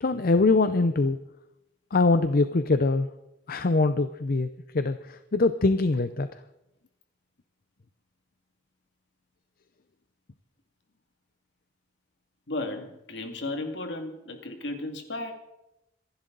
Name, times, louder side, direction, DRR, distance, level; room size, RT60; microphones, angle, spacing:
voice 1, 0.0-1.2 1.9-3.1 3.5-4.5 4.7-6.3, left 3 dB, 55° left, 11 dB, 0.6 m, -23 dB
voice 2, 12.5-15.3, left 2 dB, 70° left, 5 dB, 2.3 m, -34 dB
26.0 x 11.5 x 3.9 m, 0.88 s
head